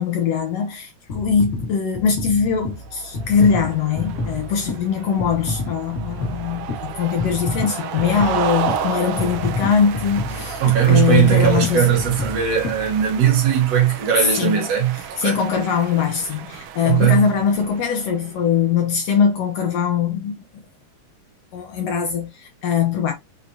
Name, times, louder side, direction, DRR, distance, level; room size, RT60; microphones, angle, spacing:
voice 1, 0.0-11.9 14.2-14.6 15.2-20.4 21.5-23.1, left 6 dB, 70° left, 1.6 m, -21 dB
sound 1, 1.1-13.5 14.1-14.2, left 2 dB, 40° left, 1.1 m, -30 dB
sound 2, 2.8-18.4, right 7 dB, 80° right, 1.3 m, -32 dB
voice 2, 10.6-15.4 16.8-17.3, right 9 dB, 65° right, 2.1 m, -18 dB
6.3 x 2.8 x 2.7 m
omnidirectional pair, 3.4 m